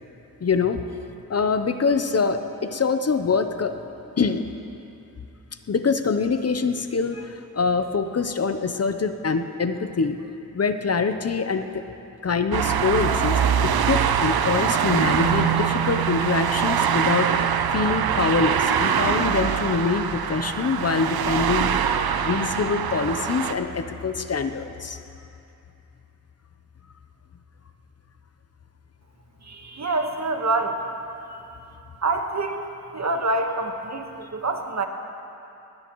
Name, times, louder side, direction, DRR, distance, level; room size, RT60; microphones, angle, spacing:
voice 1, 0.4-0.8 1.3-3.8 4.2-4.5 5.7-10.2 10.5-11.8 12.2-17.3 17.7-21.7 22.2-25.0, left 4 dB, 45° left, 9 dB, 0.7 m, -24 dB
sound 1, 12.5-23.5, right 8 dB, 90° right, 0.7 m, -23 dB
voice 2, 29.4-30.8 32.0-32.7 32.9-34.9, right 2 dB, 50° right, 4 dB, 1.4 m, -26 dB
20.0 x 18.5 x 3.1 m, 2.8 s
cardioid pair, 75°, 36 cm